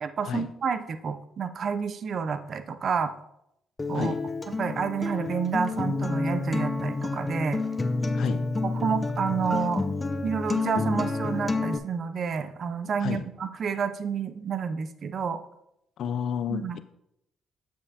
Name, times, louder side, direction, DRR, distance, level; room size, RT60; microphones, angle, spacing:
voice 1, 0.0-3.1 3.9-4.1 4.6-7.6 8.6-9.9 10.2-15.4 16.5-16.8, right 6 dB, 55° right, 10 dB, 0.5 m, -29 dB
Acoustic guitar, 3.8-11.8, left 3 dB, 25° left, 0.6 m, -29 dB
voice 2, 8.1-8.5 13.0-13.2 16.0-16.8, left 7 dB, 70° left, 12 dB, 0.4 m, -31 dB
7.5 x 6.7 x 2.8 m, 0.81 s
supercardioid pair, 70°, 0 cm